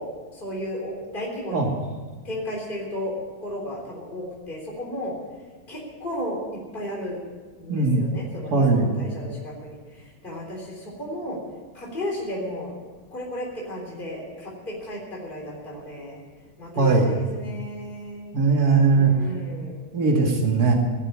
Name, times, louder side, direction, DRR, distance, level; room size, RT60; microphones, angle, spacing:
voice 1, 0.0-1.7 2.2-3.2 3.4-5.2 5.7-7.2 7.6-11.4 11.7-12.8 13.1-16.2 16.6-18.4 18.9-19.8, equal, 25° left, -3 dB, 3.9 m, -34 dB
voice 2, 7.7-8.0 8.5-8.9 16.8-17.1 18.3-19.1 19.9-20.7, right 4 dB, 50° right, 0 dB, 2.8 m, -19 dB
18.0 x 7.5 x 9.7 m, 1.4 s
omnidirectional pair, 2.1 m